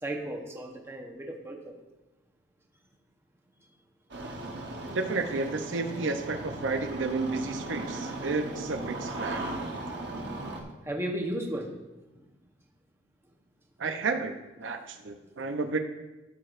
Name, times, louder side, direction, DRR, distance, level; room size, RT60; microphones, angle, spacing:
voice 1, 0.0-1.8 4.9-5.0 10.8-11.7 12.2-12.3, right 1 dB, 15° right, 1 dB, 0.9 m, -35 dB
Engine starting, 4.1-10.6, right 2 dB, 60° right, 1.0 m, -37 dB
voice 2, 4.9-9.4 13.8-15.8, right 3 dB, 80° right, 6 dB, 0.6 m, -31 dB
13.5 x 6.6 x 2.5 m, 1.1 s
head